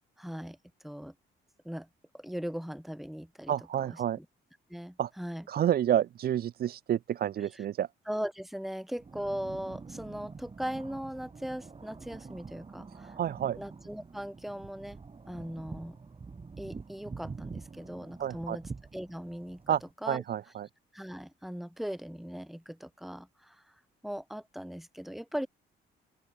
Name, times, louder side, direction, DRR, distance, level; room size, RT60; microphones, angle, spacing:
voice 1, 0.2-0.6 0.8-1.1 1.6-1.9 2.1-3.5 3.9-4.2 4.7-5.5 7.4-7.6 8.1-13.2 13.6-15.0 15.3-16.0 16.6-19.7 20.0-20.2 20.9-23.7 24.0-25.5, equal, ahead, 3.2 m, -39 dB
voice 2, 3.5-4.2 5.0-5.1 5.5-7.9 13.2-13.6 18.2-18.6 19.7-19.8 20.1-20.7, right 10 dB, 50° right, 0.5 m, -29 dB
sound 1, 9.0-19.9, right 4 dB, 30° right, 2.1 m, -46 dB
open air
cardioid pair, 90°, 20 cm